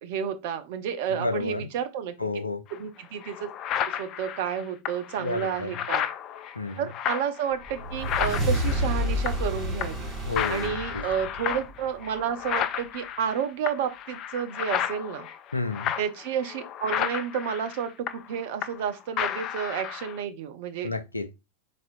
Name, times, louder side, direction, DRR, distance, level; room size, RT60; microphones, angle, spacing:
voice 1, 0.0-2.3 2.7-3.5 3.9-6.0 6.8-10.1 10.5-15.3 16.0-20.9, right 8 dB, 50° right, 0.7 m, -31 dB
voice 2, 1.1-1.7 2.2-2.6 5.2-5.8 6.5-6.9 10.2-11.0 15.5-15.9 20.8-21.3, left 3 dB, 80° left, 0.6 m, -31 dB
sound 1, 2.7-2.8 3.2-9.5 9.8-10.1 10.4-18.9 19.2-20.2, left 10 dB, 35° left, 0.4 m, -32 dB
sound 2, 7.6-12.2, equal, 25° right, 2.3 m, -30 dB
4.3 x 4.2 x 2.4 m
figure-of-eight pair, 90°, 0 cm